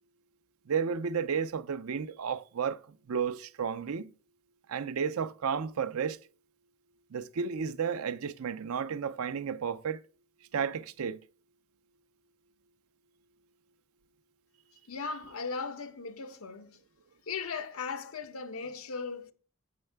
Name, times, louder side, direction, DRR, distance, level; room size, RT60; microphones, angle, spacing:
voice 1, 0.7-4.1 4.7-6.2 7.1-10.0 10.5-11.2, right 6 dB, 85° right, 0.5 m, -32 dB
voice 2, 14.9-16.8 17.3-19.3, left 5 dB, 80° left, 0.8 m, -37 dB
7.7 x 6.3 x 3.3 m
head